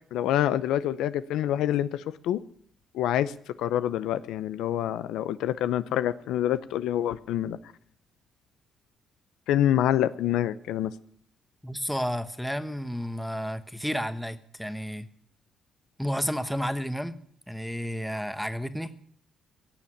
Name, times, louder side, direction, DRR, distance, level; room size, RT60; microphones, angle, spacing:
voice 1, 0.1-2.4 2.9-3.3 3.6-7.6 9.5-10.9, left 11 dB, 90° left, 14 dB, 0.6 m, -26 dB
voice 2, 11.6-15.1 16.0-17.2 17.5-18.9, equal, ahead, 10 dB, 1.2 m, -31 dB
17.5 x 7.1 x 9.9 m, 0.62 s
cardioid pair, 90°, 0 cm